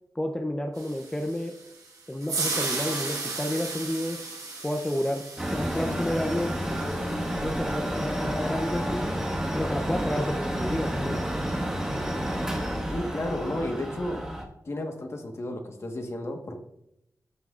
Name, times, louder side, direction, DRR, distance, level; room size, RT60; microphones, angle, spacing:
voice 1, 0.2-1.5 2.1-4.2 4.6-6.5 7.3-9.2 9.5-11.2, left 1 dB, 10° left, 4 dB, 0.5 m, -30 dB
sound 1, 0.8-9.0, right 3 dB, 80° right, 2.4 m, -36 dB
Mechanical fan, 5.4-14.4, equal, 10° right, 1.4 m, -30 dB
sound 2, 5.7-7.7, left 2 dB, 75° left, 1.2 m, -42 dB
voice 2, 12.9-14.3 14.6-16.6, left 1 dB, 45° left, 4 dB, 1.2 m, -32 dB
13.5 x 6.0 x 2.4 m, 0.79 s
wide cardioid pair, 130°, 6 cm